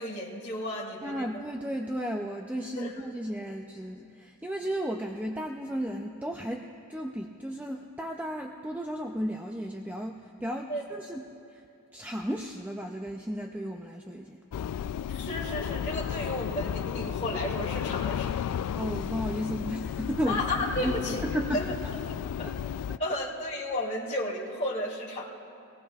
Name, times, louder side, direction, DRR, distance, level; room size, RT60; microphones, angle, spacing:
voice 1, 0.0-1.4 2.7-2.9 10.7-10.8 15.1-18.4 20.3-21.2 21.5-21.6 22.0-22.1 22.6-22.7 23.0-25.3, left 1 dB, 30° left, -6 dB, 2.3 m, -33 dB
voice 2, 1.0-11.2 11.5-11.6 11.9-14.4 18.8-20.4 20.8-21.6 22.4-22.5 22.9-23.0, equal, 5° right, 2 dB, 0.4 m, -34 dB
sound 1, 14.5-23.0, left 8 dB, 85° left, 0.3 m, -33 dB
25.0 x 18.5 x 2.4 m, 2.6 s
head